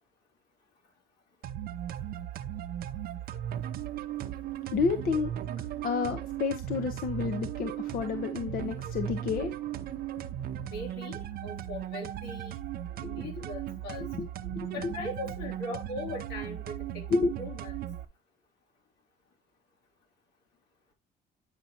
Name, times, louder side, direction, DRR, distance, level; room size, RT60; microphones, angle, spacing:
sound 1, 1.4-18.1, right 11 dB, 60° right, 0.6 m, -37 dB
voice 1, 4.7-5.3 5.8-9.5 13.0-13.1 13.4-13.5 14.0-14.9 17.1-17.3, left 5 dB, 60° left, 0.9 m, -30 dB
voice 2, 10.6-12.5 13.0-14.1 14.7-17.8, left 2 dB, 80° left, 2.9 m, -40 dB
9.1 x 5.1 x 2.9 m
cardioid pair, 110°, 17 cm